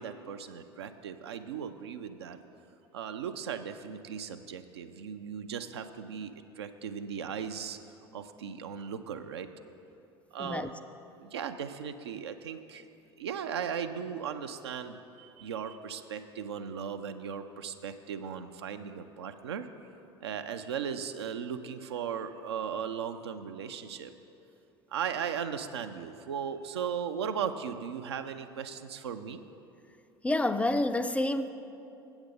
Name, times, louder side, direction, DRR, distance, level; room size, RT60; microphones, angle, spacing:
voice 1, 0.0-2.4 2.9-7.8 8.1-9.5 10.3-10.8 11.2-12.9 13.2-19.7 20.2-24.1 24.9-29.4, right 7 dB, 75° right, 8 dB, 0.4 m, -37 dB
voice 2, 30.2-31.5, left 1 dB, 10° left, 10 dB, 0.3 m, -28 dB
8.1 x 8.0 x 5.1 m, 2.8 s
figure-of-eight pair, 65°, 14 cm